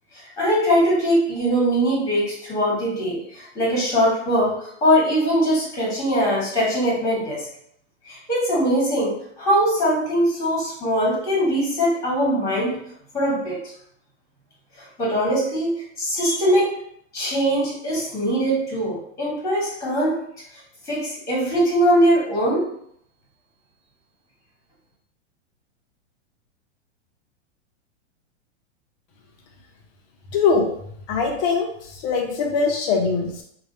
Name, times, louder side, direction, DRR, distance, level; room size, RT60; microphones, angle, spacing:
voice 1, 0.4-7.5 8.0-12.8 13.1-13.6 15.0-16.7 17.1-20.2 20.9-22.7, equal, 10° left, -5 dB, 1.5 m, -21 dB
voice 2, 30.3-30.7 31.1-33.4, left 5 dB, 35° left, 2 dB, 0.8 m, -22 dB
3.3 x 2.4 x 4.1 m, 0.68 s
hypercardioid pair, 145°, 35 cm